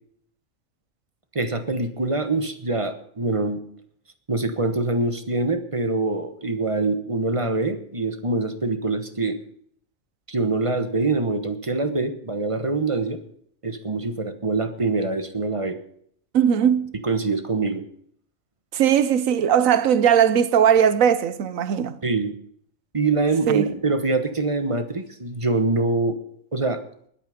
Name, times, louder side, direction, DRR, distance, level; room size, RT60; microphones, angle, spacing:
voice 1, 1.3-3.6 4.3-9.4 10.3-13.2 13.6-15.8 17.0-17.8 22.0-22.3 22.9-26.2 26.5-26.8, right 3 dB, 25° right, 1.2 m, -24 dB
voice 2, 16.3-16.9 18.7-22.0 23.5-23.7, right 8 dB, 85° right, 1.3 m, -19 dB
20.0 x 8.9 x 5.1 m
omnidirectional pair, 1.4 m